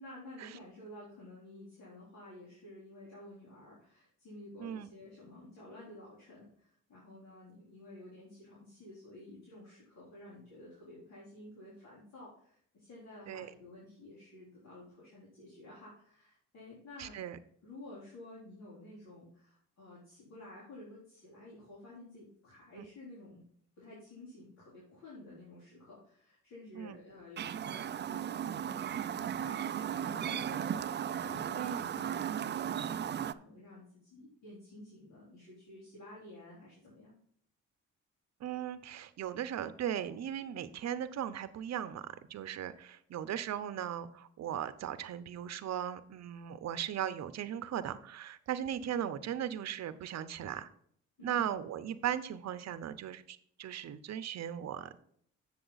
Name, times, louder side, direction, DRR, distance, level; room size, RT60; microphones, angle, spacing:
voice 1, 0.0-17.2 17.6-23.4 23.8-37.2 51.2-51.6, left 1 dB, 60° left, -7 dB, 3.8 m, -52 dB
voice 2, 17.0-17.4 26.8-27.0 31.6-31.9 38.4-50.7 51.2-55.0, right 10 dB, 60° right, 13 dB, 0.8 m, -38 dB
Chirp tweet, 27.4-33.3, right 9 dB, 35° right, 0.4 m, -36 dB
7.9 x 7.1 x 4.0 m, 0.65 s
cardioid pair, 90°, 30 cm